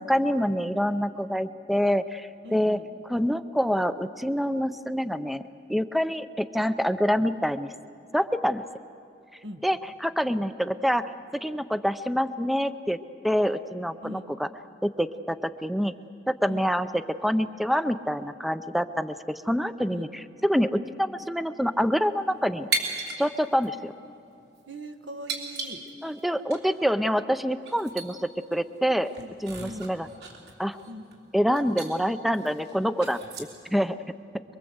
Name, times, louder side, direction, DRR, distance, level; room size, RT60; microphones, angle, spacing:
voice 1, 0.0-2.8 3.1-5.4 5.7-7.7 8.1-8.7 9.6-11.1 11.4-13.0 13.2-14.5 14.8-15.9 16.3-20.1 20.4-22.7 23.2-23.9 26.0-29.1 29.4-30.1 30.6-30.8 31.3-34.0, equal, ahead, 12 dB, 0.5 m, -26 dB
voice 2, 2.4-2.9 9.4-9.7 14.0-14.3 16.5-16.7 19.9-20.1 24.7-25.8 29.1-29.3 29.6-29.9 30.9-31.1, equal, 85° right, 7 dB, 1.7 m, -40 dB
sound 1, 22.7-23.2 23.5-23.7 24.4-24.6 25.3-26.2 26.5-26.6 27.2-27.3 27.6-28.1 28.5-28.6 29.0-31.2 31.5-31.9 32.3-33.7, right 3 dB, 60° right, 3.6 m, -35 dB
24.5 x 23.5 x 7.9 m, 2.7 s
head